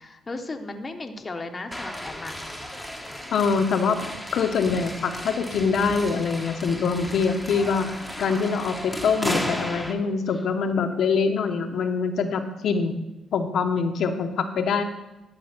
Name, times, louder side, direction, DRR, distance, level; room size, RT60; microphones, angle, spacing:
voice 1, 0.0-2.3 3.1-3.2 10.3-10.5, left 2 dB, 25° left, 5 dB, 0.9 m, -36 dB
sound 1, 1.7-9.9, left 1 dB, ahead, 1.2 m, -34 dB
voice 2, 3.3-4.0 4.3-7.9 8.2-12.9 13.3-14.8, left 5 dB, 65° left, 5 dB, 0.8 m, -24 dB
11.5 x 5.1 x 5.9 m, 0.99 s
cardioid pair, 90°, 0 cm